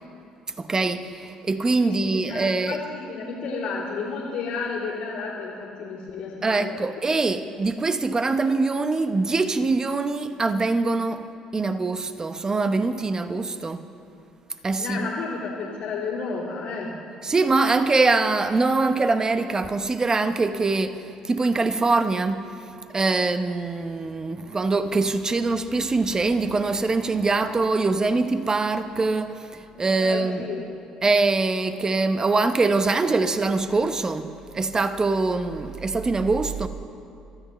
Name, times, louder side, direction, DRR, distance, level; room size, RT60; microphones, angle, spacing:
voice 1, 0.6-2.8 6.4-13.8 14.6-15.1 17.2-21.0 21.3-22.5 22.9-30.5 31.0-36.7, right 3 dB, 30° right, 1.0 m, -23 dB
voice 2, 1.8-6.9 14.8-17.0 30.0-30.6, left 4 dB, 70° left, 2.8 m, -32 dB
24.5 x 13.5 x 3.2 m
hypercardioid pair, 60°, 2 cm